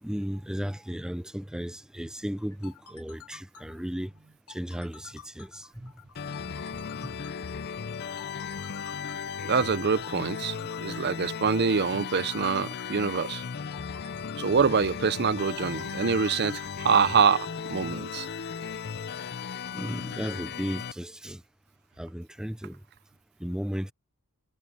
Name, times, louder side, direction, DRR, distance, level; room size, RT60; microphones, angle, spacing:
voice 1, 0.0-4.1 4.5-5.9 7.0-7.1 19.7-21.4 22.0-22.8 23.4-23.9, equal, 5° right, 0.5 m, -35 dB
sound 1, 2.4-17.1, left 6 dB, 90° left, 2.8 m, -51 dB
sound 2, 6.2-20.9, left 6 dB, 50° left, 0.5 m, -36 dB
voice 2, 9.4-13.4 14.4-18.3, right 5 dB, 50° right, 0.6 m, -25 dB
sound 3, 14.4-20.5, left 6 dB, 30° left, 3.8 m, -56 dB
head